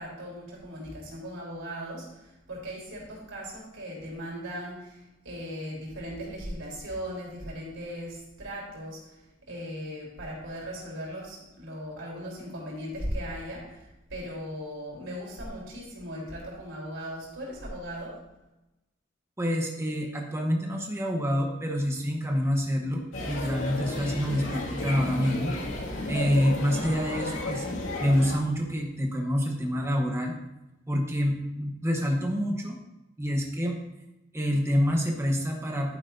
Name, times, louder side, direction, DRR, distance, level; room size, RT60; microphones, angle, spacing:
voice 1, 0.0-18.2, equal, 90° right, -3 dB, 3.6 m, -38 dB
voice 2, 19.4-25.6 26.1-27.7 28.0-30.3 30.9-32.8 33.2-33.8 34.3-36.0, equal, 15° right, 1 dB, 1.0 m, -27 dB
sound 1, 23.1-28.3, left 2 dB, 90° left, 2.2 m, -33 dB
11.5 x 9.8 x 2.7 m, 0.96 s
head